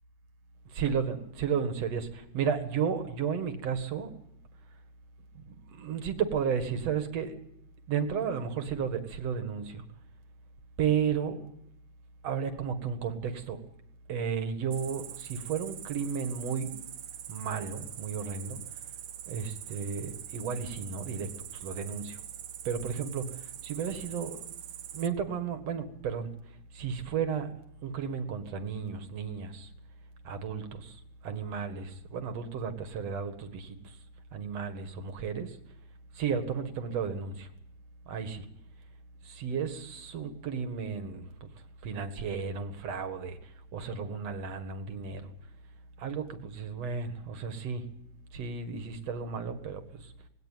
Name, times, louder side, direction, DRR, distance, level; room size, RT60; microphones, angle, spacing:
voice 1, 0.8-4.1 5.5-7.3 7.9-9.8 10.8-11.4 12.2-13.6 14.1-16.7 17.3-18.6 19.3-21.3 21.6-22.2 22.6-23.4 23.6-24.4 24.9-26.3 26.7-27.5 27.8-29.7 30.2-31.0 31.2-34.0 34.3-35.6 36.1-37.5 38.1-38.4 39.2-41.5 41.8-45.3 46.0-47.9 48.3-50.1, right 6 dB, 60° right, 8 dB, 2.9 m, -33 dB
Cricket, 14.7-25.1, right 11 dB, 85° right, 2.5 m, -44 dB
20.5 x 17.5 x 9.2 m, 0.78 s
omnidirectional pair, 3.3 m